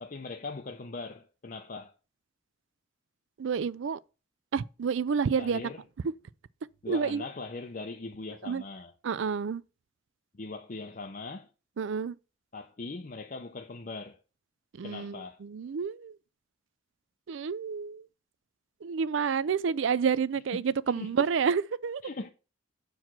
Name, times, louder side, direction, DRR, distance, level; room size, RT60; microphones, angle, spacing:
voice 1, 0.0-1.9 5.4-5.8 6.8-8.9 10.3-11.5 12.5-14.2 14.8-15.4 20.5-20.7 20.9-21.1 22.0-22.3, left 3 dB, 40° left, 0.6 m, -40 dB
voice 2, 3.4-4.0 4.5-5.6 6.9-7.2 8.4-8.6 9.0-9.6 11.8-12.2 14.8-16.1 17.3-18.0 18.8-22.0, right 6 dB, 65° right, 0.4 m, -29 dB
7.3 x 4.7 x 5.9 m
head